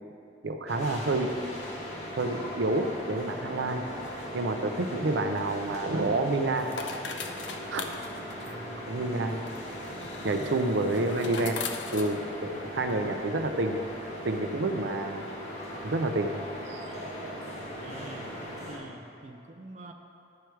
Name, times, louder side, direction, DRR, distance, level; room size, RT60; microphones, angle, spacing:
voice 1, 0.4-1.3 2.2-3.8 4.3-6.7 7.7-7.9 8.9-9.5 10.2-11.6 11.9-13.8 14.2-15.2 15.8-16.4 16.7-16.8, right 2 dB, 85° right, 6 dB, 0.5 m, -29 dB
sound 1, 0.7-18.8, equal, 35° left, 1.2 m, -39 dB
sound 2, 5.2-12.9, left 5 dB, 85° left, 0.6 m, -41 dB
voice 2, 8.4-9.0 10.2-10.9 17.8-19.9, right 2 dB, 40° right, 3 dB, 0.5 m, -46 dB
12.0 x 4.8 x 4.6 m, 2.7 s
head